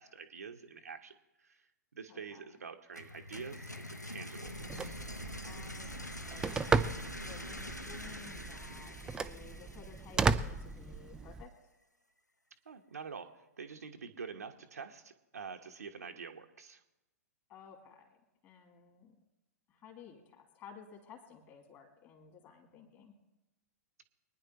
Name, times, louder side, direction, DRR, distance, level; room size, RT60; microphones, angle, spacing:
voice 1, 0.0-5.0 12.7-16.8, right 5 dB, 65° right, 5 dB, 1.0 m, -47 dB
voice 2, 2.1-2.4 5.4-6.9 7.2-11.5 17.5-18.2 18.4-19.2 19.7-23.1, left 7 dB, 30° left, 3 dB, 2.7 m, -55 dB
sound 1, 2.9-10.7, left 1 dB, 90° left, 0.8 m, -45 dB
Telephone, 4.5-11.4, right 4 dB, 10° right, 0.4 m, -35 dB
24.0 x 10.0 x 2.9 m, 0.98 s
figure-of-eight pair, 105°, 9 cm